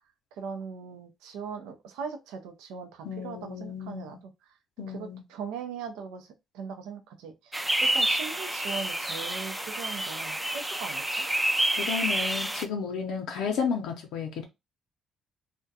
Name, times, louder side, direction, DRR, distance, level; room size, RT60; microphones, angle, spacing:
voice 1, 0.3-4.3 4.9-11.2, right 6 dB, 85° right, 0.5 m, -40 dB
voice 2, 3.0-4.2 4.8-5.2 11.8-14.4, left 6 dB, 80° left, 0.6 m, -32 dB
sound 1, 7.5-12.7, right 1 dB, 10° right, 0.3 m, -28 dB
2.4 x 2.1 x 2.6 m
supercardioid pair, 65°, 0 cm